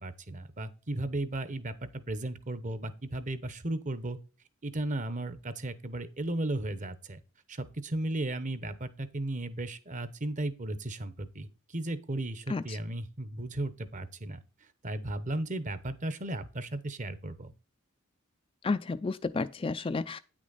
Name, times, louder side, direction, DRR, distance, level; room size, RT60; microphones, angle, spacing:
voice 1, 0.0-4.2 4.6-7.2 7.5-14.4 14.8-17.5, right 1 dB, 35° right, 0.9 m, -35 dB
voice 2, 18.6-20.2, left 3 dB, 25° left, 0.3 m, -31 dB
9.4 x 6.2 x 4.0 m
head